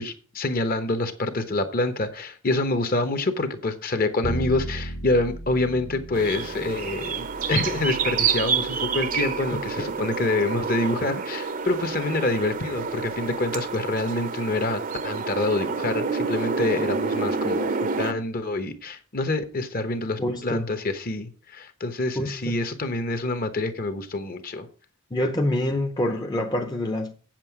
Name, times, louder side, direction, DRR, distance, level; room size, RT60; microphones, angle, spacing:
voice 1, 0.0-24.7, left 2 dB, 45° left, 0.9 m, -27 dB
Bowed string instrument, 4.2-10.4, right 1 dB, 65° left, 1.4 m, -37 dB
sound 1, 6.1-18.1, right 5 dB, 40° right, 0.6 m, -28 dB
voice 2, 20.2-20.7 22.2-22.6 25.1-27.1, left 1 dB, 20° left, 0.6 m, -26 dB
7.9 x 7.6 x 4.7 m
head